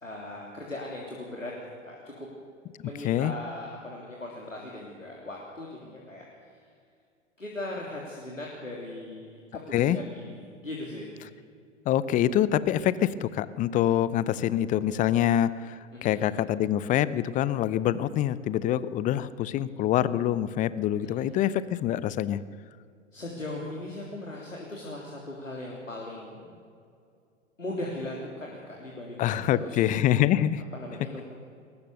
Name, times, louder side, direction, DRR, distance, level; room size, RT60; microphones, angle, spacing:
voice 1, 0.0-2.3 2.8-6.2 7.4-11.1 15.9-16.2 21.0-21.3 23.1-26.5 27.6-29.8 30.7-31.2, left 1 dB, 90° left, -2 dB, 3.4 m, -39 dB
voice 2, 11.9-22.4 29.2-30.6, left 11 dB, 20° left, 17 dB, 0.6 m, -25 dB
22.0 x 19.0 x 6.8 m, 2.3 s
figure-of-eight pair, 100°, 38 cm